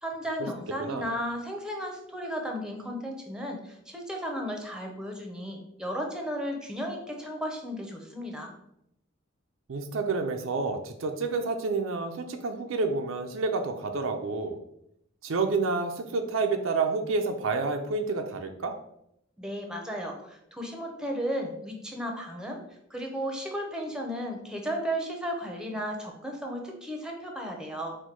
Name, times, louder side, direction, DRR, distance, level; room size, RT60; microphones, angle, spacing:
voice 1, 0.0-8.5 19.4-22.6 22.9-27.9, equal, 5° right, 1 dB, 0.6 m, -34 dB
voice 2, 9.7-14.6 15.2-18.7, right 4 dB, 80° right, 6 dB, 0.5 m, -29 dB
4.4 x 2.2 x 4.4 m, 0.77 s
head